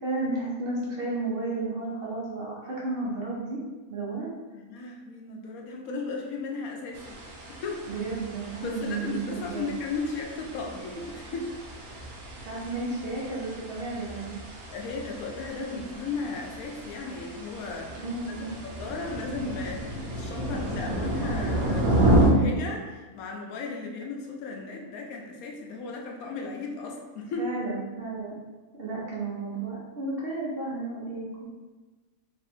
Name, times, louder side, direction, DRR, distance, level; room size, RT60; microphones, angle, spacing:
voice 1, 0.0-3.6 3.9-4.3 7.9-9.7 12.4-14.4 18.0-18.5 27.4-28.4 28.8-31.4, right 3 dB, 50° right, -5 dB, 0.9 m, -33 dB
voice 2, 4.5-7.2 7.5-7.9 8.6-11.5 14.7-27.5, left 3 dB, 80° left, 1 dB, 1.1 m, -36 dB
sound 1, 6.9-22.3, right 1 dB, 90° right, 1.2 m, -31 dB
3.3 x 2.6 x 4.3 m, 1.3 s
omnidirectional pair, 1.5 m